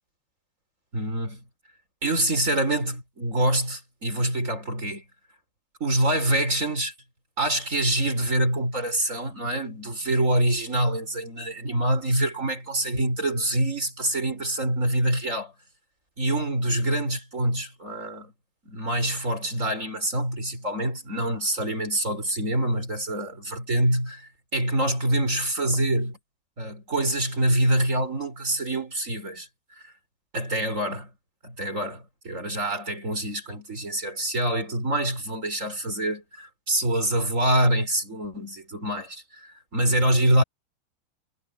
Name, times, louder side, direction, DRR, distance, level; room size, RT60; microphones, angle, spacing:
voice 1, 0.9-1.4 2.0-5.0 5.8-6.9 7.4-15.5 16.2-18.3 18.6-26.2 26.6-29.5 30.3-31.1 31.4-40.4, right 1 dB, 20° right, 4.6 m, -25 dB
omnidirectional pair, 4.9 m